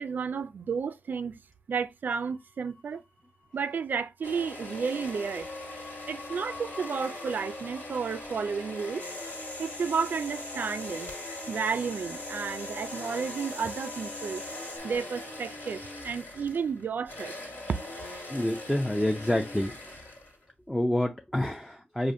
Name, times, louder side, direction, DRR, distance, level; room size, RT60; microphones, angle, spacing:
voice 1, 0.0-1.4 1.7-3.0 3.5-5.5 6.1-9.1 9.6-11.1 11.5-14.4 14.8-17.3 17.7-17.8, right 6 dB, 70° right, 0.3 m, -32 dB
sound 1, 2.4-3.2 3.5-3.7 4.9-14.5, left 3 dB, 30° left, 1.2 m, -51 dB
sound 2, 4.2-20.5, left 2 dB, 75° left, 1.8 m, -41 dB
sound 3, 9.0-14.8, left 2 dB, 55° left, 1.1 m, -44 dB
voice 2, 18.3-20.0 20.7-22.1, left 1 dB, 10° left, 0.4 m, -28 dB
4.9 x 2.5 x 2.5 m
wide cardioid pair, 110°, 3 cm